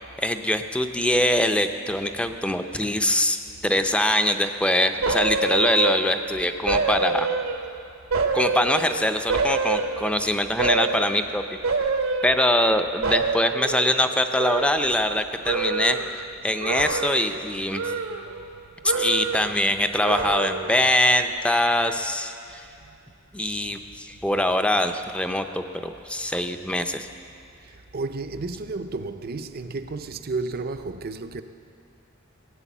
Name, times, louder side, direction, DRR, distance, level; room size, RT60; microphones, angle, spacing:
voice 1, 0.2-7.3 8.3-11.6 12.2-17.9 18.8-22.7 23.3-27.1, left 1 dB, 5° left, 0.5 m, -23 dB
hanna-long, 5.0-6.3 6.7-7.7 8.1-10.2 10.6-11.2 11.6-12.8 13.0-15.2 15.4-16.1 16.6-17.4 17.7-18.6 18.8-19.6 20.0-20.8 21.2-21.3, right 4 dB, 80° right, 1.1 m, -27 dB
voice 2, 27.9-31.4, right 3 dB, 50° right, 0.6 m, -32 dB
16.5 x 8.6 x 7.3 m
head